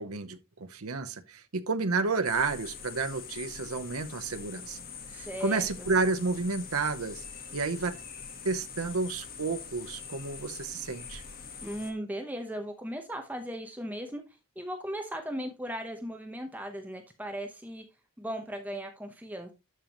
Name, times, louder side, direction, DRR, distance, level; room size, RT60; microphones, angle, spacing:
voice 1, 0.0-4.8 5.1-7.2 7.5-7.9 8.4-11.2, right 4 dB, 80° right, 0.8 m, -31 dB
sound 1, 2.2-11.9, left 6 dB, 40° left, 1.4 m, -44 dB
voice 2, 5.1-5.9 11.6-14.2 14.6-17.8 18.2-19.5, equal, 5° right, 0.8 m, -37 dB
12.0 x 5.2 x 3.0 m
head